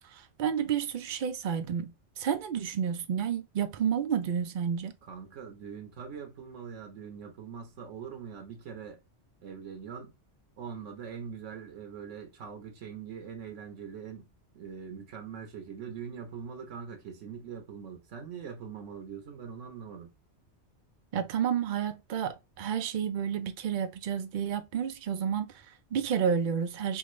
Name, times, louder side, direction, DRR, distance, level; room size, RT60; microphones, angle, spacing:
voice 1, 0.1-4.9 21.1-27.0, right 8 dB, 55° right, 0.5 m, -30 dB
voice 2, 5.0-9.0 9.4-10.1 10.6-14.3 14.5-20.1, right 7 dB, 85° right, 1.2 m, -42 dB
3.6 x 2.5 x 3.0 m
omnidirectional pair, 1.2 m